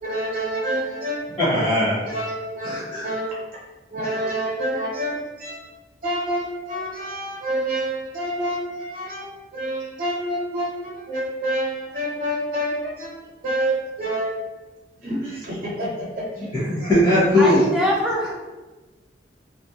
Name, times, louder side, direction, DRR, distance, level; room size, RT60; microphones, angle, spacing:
voice 1, 0.0-1.2 2.1-3.3 3.9-5.6 6.0-9.3 9.5-13.1 13.4-14.3 15.0-16.5, right 1 dB, 50° right, -5 dB, 0.7 m, -27 dB
voice 2, 1.4-2.0 2.6-3.0 16.5-17.6, left 1 dB, 30° left, -13 dB, 0.9 m, -19 dB
voice 3, 17.4-18.3, equal, 5° right, -4 dB, 0.5 m, -23 dB
2.5 x 2.1 x 2.7 m, 1.2 s
head